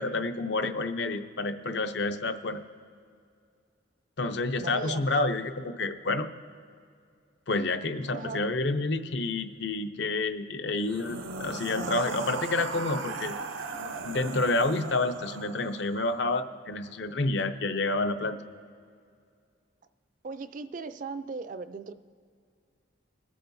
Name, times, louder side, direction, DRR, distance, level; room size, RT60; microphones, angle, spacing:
voice 1, 0.0-2.6 4.2-6.3 7.5-13.3 14.0-18.4, left 2 dB, 65° left, 9 dB, 0.6 m, -29 dB
voice 2, 4.6-5.0 8.1-8.4 20.2-21.9, right 4 dB, 45° right, 12 dB, 0.4 m, -37 dB
sound 1, 10.8-16.0, right 4 dB, 90° right, 0.6 m, -37 dB
23.5 x 8.5 x 2.7 m, 2.3 s
head